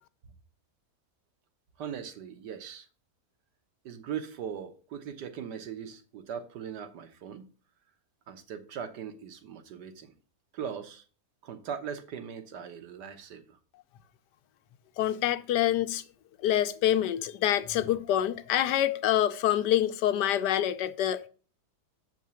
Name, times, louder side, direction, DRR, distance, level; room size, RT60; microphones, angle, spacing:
voice 1, 1.8-2.9 3.8-7.4 8.3-10.1 10.5-11.0 11.4-13.6, right 8 dB, 90° right, 1.7 m, -39 dB
voice 2, 15.0-16.0 16.4-21.3, left 11 dB, 90° left, 1.3 m, -26 dB
7.4 x 4.6 x 6.9 m
omnidirectional pair, 1.7 m